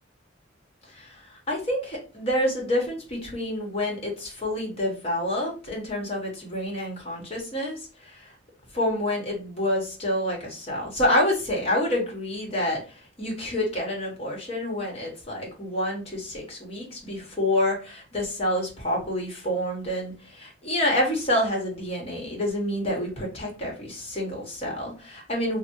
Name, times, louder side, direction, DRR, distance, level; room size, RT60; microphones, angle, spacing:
voice 1, 0.9-8.3 8.7-25.6, left 1 dB, 30° left, -2 dB, 1.1 m, -28 dB
3.3 x 2.1 x 2.9 m, 0.33 s
head